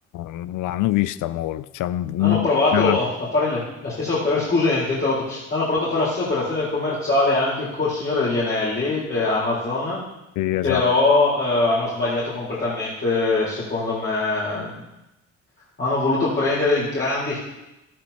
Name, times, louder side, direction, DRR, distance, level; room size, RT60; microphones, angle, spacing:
voice 1, 0.1-3.0 10.4-10.8, left 16 dB, 80° left, 16 dB, 0.5 m, -24 dB
voice 2, 2.2-10.0 10.6-14.8 15.8-17.4, left 3 dB, 40° left, -8 dB, 4.1 m, -22 dB
13.5 x 13.0 x 2.9 m, 0.94 s
cardioid pair, 90°, 30 cm